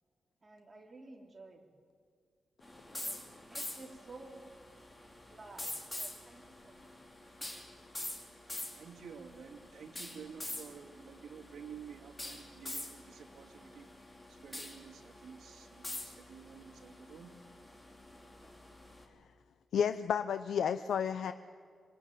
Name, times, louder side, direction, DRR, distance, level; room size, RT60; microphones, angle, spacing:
voice 1, 0.4-1.7 2.9-4.4 5.3-6.9, right 2 dB, 25° right, 1 dB, 3.4 m, -53 dB
sound 1, 2.6-19.0, left 1 dB, 15° left, 3.2 m, -46 dB
voice 2, 8.7-17.4, right 7 dB, 90° right, -2 dB, 2.5 m, -51 dB
voice 3, 19.7-21.3, left 8 dB, 90° left, 10 dB, 0.7 m, -31 dB
26.0 x 22.0 x 9.2 m, 2.1 s
wide cardioid pair, 160°, 0 cm